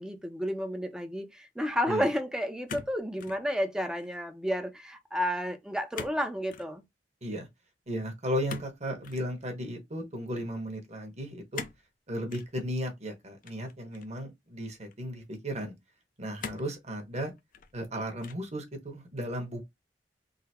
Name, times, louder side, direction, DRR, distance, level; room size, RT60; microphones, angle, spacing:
voice 1, 0.0-6.8, equal, 5° right, 0.6 m, -31 dB
sound 1, 2.7-3.4 3.8-4.2 5.9-6.2 6.5-6.7 8.5-9.3 11.5-11.9 12.3-12.5 13.4-14.2 14.9-15.0 16.4-16.8 17.4-17.9 18.2-18.6, left 5 dB, 50° left, 0.5 m, -42 dB
voice 2, 7.9-11.6 12.1-15.7 16.2-17.3 17.7-19.7, equal, 40° right, 1.3 m, -35 dB
3.9 x 2.1 x 4.2 m
head